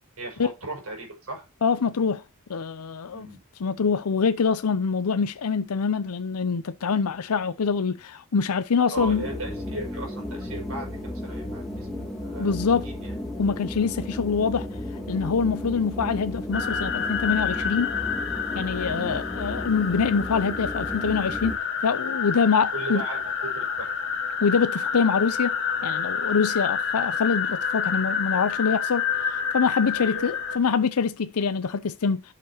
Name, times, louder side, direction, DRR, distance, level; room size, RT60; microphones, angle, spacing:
voice 1, 0.2-1.4 3.1-3.4 8.9-12.6 12.8-13.1 18.9-19.1 22.3-23.9 29.9-30.3, right 2 dB, 75° right, 6.3 m, -37 dB
voice 2, 1.6-2.2 2.5-3.3 3.6-9.2 12.4-12.9 13.4-14.7 15.1-17.9 18.5-21.5 21.8-23.0 24.4-25.5 25.8-32.2, left 5 dB, 80° left, 0.6 m, -25 dB
sound 1, 8.9-21.6, left 1 dB, ahead, 1.9 m, -34 dB
sound 2, 16.5-30.6, left 6 dB, 60° left, 1.6 m, -29 dB
12.0 x 6.7 x 2.9 m
head